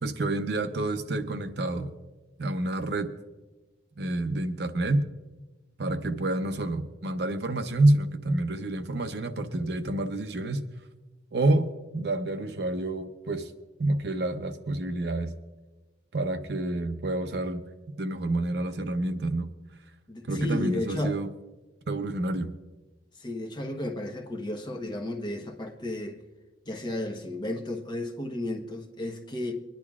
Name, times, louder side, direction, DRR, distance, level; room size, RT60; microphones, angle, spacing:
voice 1, 0.0-1.9 2.4-3.1 4.0-5.0 5.8-10.6 11.3-13.5 13.8-15.3 16.1-17.6 18.0-19.5 20.3-21.3 21.9-22.5, right 2 dB, 65° right, 0.7 m, -28 dB
voice 2, 20.1-21.2 23.2-26.2 26.7-29.5, left 1 dB, 25° left, 1.0 m, -33 dB
25.5 x 10.5 x 2.4 m
head